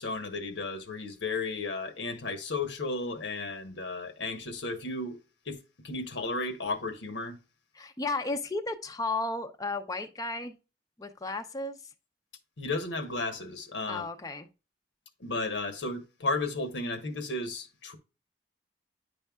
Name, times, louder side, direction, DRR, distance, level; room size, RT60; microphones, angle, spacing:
voice 1, 0.0-5.2 5.5-7.4 12.6-14.1 15.2-18.0, left 3 dB, 85° left, 1.2 m, -34 dB
voice 2, 7.7-10.5 11.0-11.8 13.9-14.5, left 2 dB, 20° left, 0.6 m, -33 dB
10.0 x 5.4 x 2.3 m
head